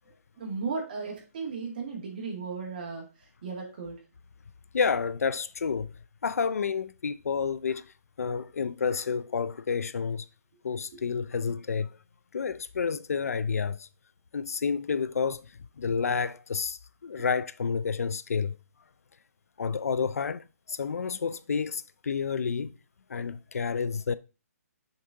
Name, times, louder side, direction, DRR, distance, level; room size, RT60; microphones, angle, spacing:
voice 1, 0.4-4.0 10.9-11.0, right 4 dB, 30° right, 2.3 m, -36 dB
voice 2, 4.7-5.9 6.2-7.8 8.2-10.3 10.6-11.9 12.3-13.9 14.3-15.5 15.8-18.6 19.6-22.8 23.1-24.1, left 5 dB, 65° left, 0.4 m, -30 dB
6.6 x 4.7 x 3.8 m
hypercardioid pair, 175°, 9 cm